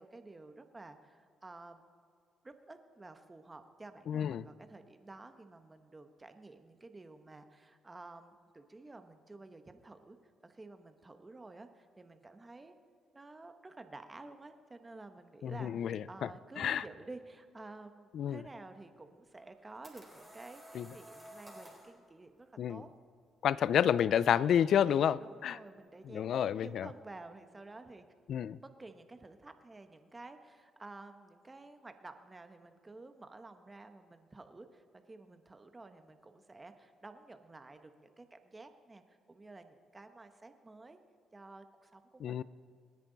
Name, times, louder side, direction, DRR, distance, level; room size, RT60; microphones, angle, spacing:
voice 1, 0.0-1.8 2.4-10.2 10.4-12.7 13.1-22.9 25.2-28.0 28.6-41.0 41.3-42.4, right 2 dB, 20° right, 7 dB, 1.2 m, -52 dB
voice 2, 4.1-4.4 15.4-16.3 16.6-16.8 18.1-18.4 20.7-20.9 22.6-22.8 23.4-25.6 26.1-26.9 28.3-28.6 42.2-42.4, left 9 dB, 65° left, 19 dB, 0.4 m, -30 dB
sound 1, 19.4-21.9, equal, 5° right, 3.9 m, -53 dB
27.5 x 10.5 x 4.1 m, 2.1 s
cardioid pair, 90°, 0 cm